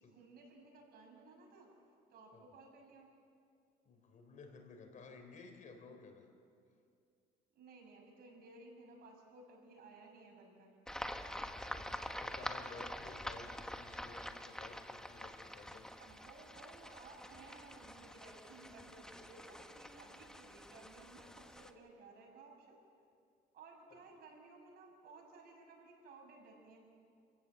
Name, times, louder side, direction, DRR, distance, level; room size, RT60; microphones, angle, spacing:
voice 1, 0.0-1.7 2.1-3.1 7.5-10.7 16.0-22.8 23.5-26.9, right 3 dB, 65° right, 1 dB, 6.1 m, -57 dB
voice 2, 3.8-6.3 11.3-15.9 23.9-24.0, left 3 dB, 50° left, 5 dB, 3.4 m, -55 dB
sound 1, 10.9-21.7, left 1 dB, 5° left, 1.2 m, -46 dB
27.5 x 16.0 x 7.5 m, 2.5 s
cardioid pair, 110°, 17 cm